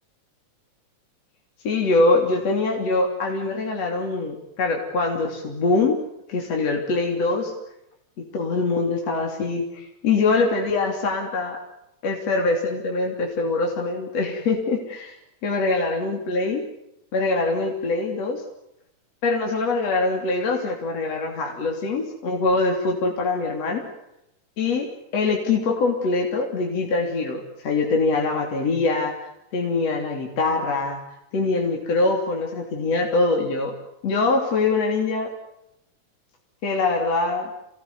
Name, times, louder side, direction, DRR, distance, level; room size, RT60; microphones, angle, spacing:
voice 1, 1.6-6.0 6.3-7.5 8.3-11.6 12.0-15.1 15.4-16.6 17.1-18.4 19.2-23.9 24.6-24.9 25.1-31.0 31.3-33.7 34.0-35.3 36.6-37.5, left 3 dB, 55° left, 1 dB, 4.3 m, -23 dB
29.5 x 18.5 x 9.7 m, 0.84 s
omnidirectional pair, 3.6 m